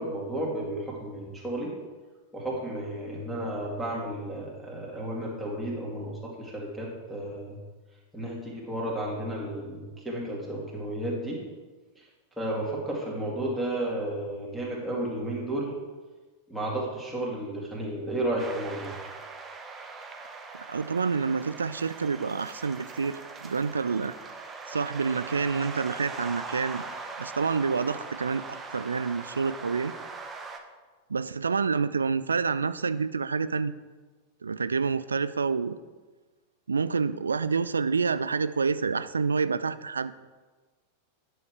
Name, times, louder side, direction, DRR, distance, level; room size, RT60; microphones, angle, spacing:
voice 1, 0.0-1.7 2.3-7.6 8.1-11.4 12.4-15.7 16.5-18.9, right 1 dB, 5° right, -5 dB, 2.4 m, -32 dB
sound 1, 18.4-30.6, right 4 dB, 20° right, 1.0 m, -41 dB
voice 2, 20.7-24.1 24.7-26.8 27.2-28.4 28.7-29.9 31.1-33.7 34.4-35.8 36.7-40.1, right 5 dB, 75° right, 15 dB, 0.3 m, -28 dB
9.8 x 6.4 x 4.6 m, 1.3 s
figure-of-eight pair, 90°, 0 cm